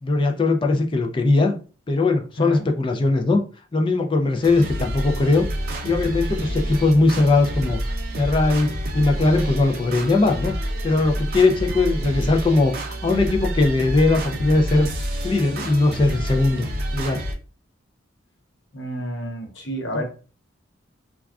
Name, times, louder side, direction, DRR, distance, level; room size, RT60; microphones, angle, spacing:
voice 1, 0.0-1.5 1.9-3.4 3.7-5.4 5.8-8.7 8.9-14.9 15.2-16.7 16.9-17.2, left 2 dB, 25° left, 0.3 m, -20 dB
sound 1, 4.4-17.3, right 1 dB, 50° right, 0.5 m, -28 dB
voice 2, 18.7-20.0, equal, 65° left, 0.8 m, -29 dB
3.4 x 2.3 x 2.3 m
head